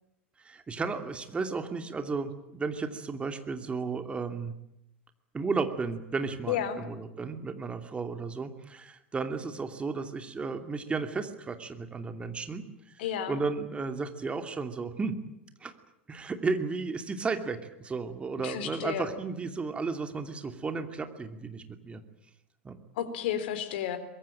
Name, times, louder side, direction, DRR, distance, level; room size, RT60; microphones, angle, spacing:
voice 1, 0.4-4.5 5.3-13.0 13.3-15.2 15.6-15.7 16.1-22.0 22.6-22.8, right 4 dB, 20° right, 8 dB, 2.7 m, -34 dB
voice 2, 6.5-6.8 13.0-13.4 18.4-19.1 23.0-24.0, left 9 dB, 60° left, 10 dB, 3.9 m, -32 dB
24.0 x 22.0 x 9.0 m, 0.83 s
figure-of-eight pair, 85°, 6 cm